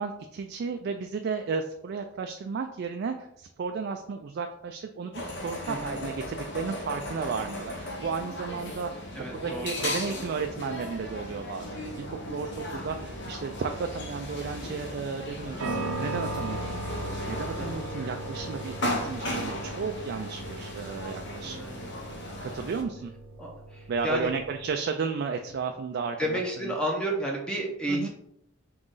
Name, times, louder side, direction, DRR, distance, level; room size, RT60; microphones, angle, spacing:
voice 1, 0.0-9.0 9.3-16.8 17.3-21.6 22.4-23.1 23.9-26.7 27.9-28.1, right 5 dB, 55° right, 5 dB, 0.3 m, -33 dB
sound 1, 5.1-22.8, left 1 dB, 60° left, 0.8 m, -36 dB
voice 2, 9.2-9.9 12.7-12.8 17.6-17.8 21.4-22.0 23.4-24.3 26.2-28.1, right 1 dB, 5° left, -1 dB, 0.6 m, -32 dB
sound 2, 11.6-24.7, right 2 dB, 85° right, 0.7 m, -39 dB
3.8 x 3.1 x 3.7 m, 0.76 s
head